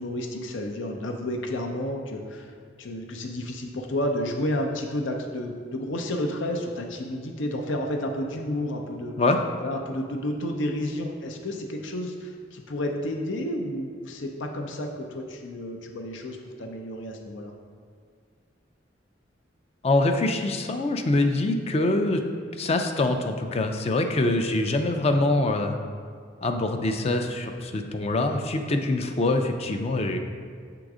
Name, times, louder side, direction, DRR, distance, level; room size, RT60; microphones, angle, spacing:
voice 1, 0.0-9.2 9.6-17.5, left 1 dB, 85° left, 3 dB, 0.7 m, -31 dB
voice 2, 19.8-22.2 22.6-25.8 26.4-30.2, left 2 dB, 35° left, 5 dB, 0.4 m, -24 dB
7.0 x 3.8 x 4.8 m, 2.2 s
head